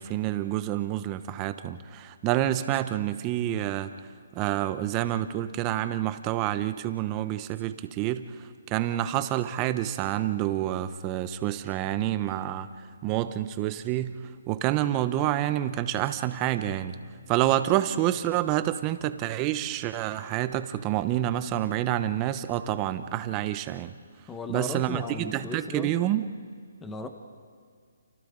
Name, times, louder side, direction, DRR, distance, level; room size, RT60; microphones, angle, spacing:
voice 1, 0.0-3.9 4.3-12.7 13.0-14.2 14.5-17.0 17.3-23.9 24.5-26.3, right 13 dB, 20° right, 11 dB, 0.9 m, -28 dB
voice 2, 24.3-25.9 26.8-27.1, left 3 dB, 10° left, 6 dB, 1.2 m, -36 dB
30.0 x 28.5 x 3.9 m, 2.1 s
hypercardioid pair, 155°, 0 cm